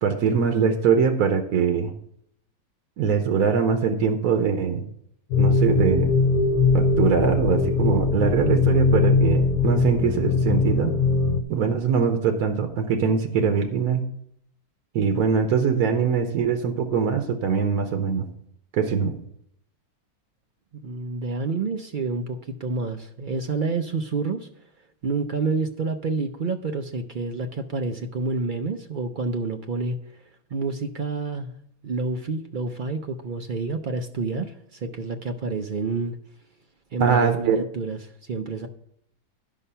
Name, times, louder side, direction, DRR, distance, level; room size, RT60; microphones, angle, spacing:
voice 1, 0.0-1.9 3.0-4.8 5.4-6.1 6.7-10.9 11.5-14.0 14.9-18.3 18.7-19.1 37.0-37.6, right 6 dB, 90° right, 6 dB, 1.3 m, -22 dB
sound 1, 5.3-11.4, left 4 dB, 75° left, 1.2 m, -21 dB
voice 2, 20.7-24.5 25.0-30.0 30.5-31.5 31.8-36.2 36.9-38.7, right 4 dB, 70° right, 6 dB, 0.4 m, -28 dB
11.0 x 5.6 x 5.5 m, 0.71 s
omnidirectional pair, 1.6 m